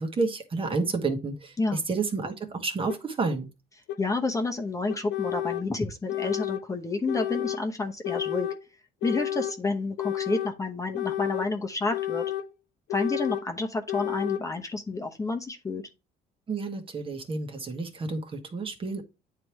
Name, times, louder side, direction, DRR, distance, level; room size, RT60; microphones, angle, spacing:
voice 1, 0.0-1.5 1.9-3.5 16.5-19.0, right 4 dB, 30° right, 1.3 m, -30 dB
sound 1, 2.9-3.0 3.9-4.0 4.9-5.7 6.1-6.6 7.1-7.6 8.0-8.6 9.0-9.6 10.0-10.5 10.9-11.5 11.9-12.5 12.9-13.5 13.9-14.4, left 13 dB, 85° left, 0.6 m, -31 dB
voice 2, 4.0-8.5 9.0-12.3 12.9-15.8, left 3 dB, 20° left, 0.9 m, -29 dB
9.5 x 3.4 x 3.0 m
cardioid pair, 110°, 17 cm